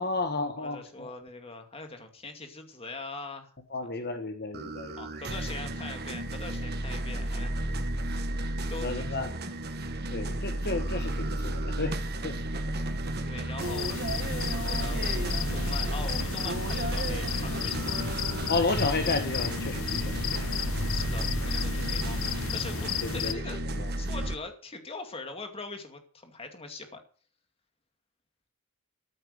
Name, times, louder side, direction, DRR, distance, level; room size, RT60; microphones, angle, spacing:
voice 1, 0.0-1.1 3.7-5.0 8.8-9.3 10.1-12.4 18.5-20.5 23.0-23.4 23.7-23.9, left 3 dB, 45° left, 6 dB, 1.4 m, -32 dB
voice 2, 0.6-3.5 3.8-4.1 4.9-7.8 8.1-8.3 8.7-9.0 12.5-12.9 13.2-13.9 14.6-17.8 20.9-23.6 24.0-27.0, left 3 dB, 25° left, 5 dB, 2.3 m, -42 dB
sound 1, 4.5-24.3, right 1 dB, 45° right, 1.4 m, -33 dB
sound 2, 13.6-23.3, left 6 dB, 65° left, 0.9 m, -33 dB
14.0 x 8.8 x 6.6 m, 0.42 s
head